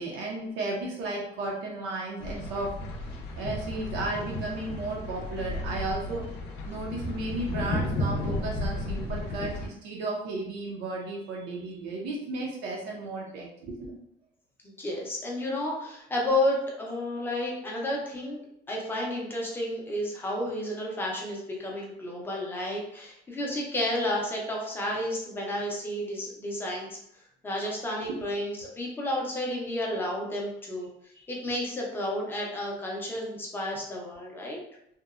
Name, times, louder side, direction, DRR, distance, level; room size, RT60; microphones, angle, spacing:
voice 1, 0.0-3.1 3.4-6.3 6.7-14.0 28.1-28.2 31.1-31.5, right 2 dB, 75° right, -2 dB, 0.5 m, -34 dB
sound 1, 2.2-9.7, left 1 dB, 70° left, 0.5 m, -33 dB
voice 2, 14.6-18.4 18.7-27.0 27.4-30.9 31.3-34.6, left 1 dB, 10° left, -2 dB, 0.4 m, -31 dB
2.8 x 2.0 x 2.3 m, 0.77 s
cardioid pair, 180°, 18 cm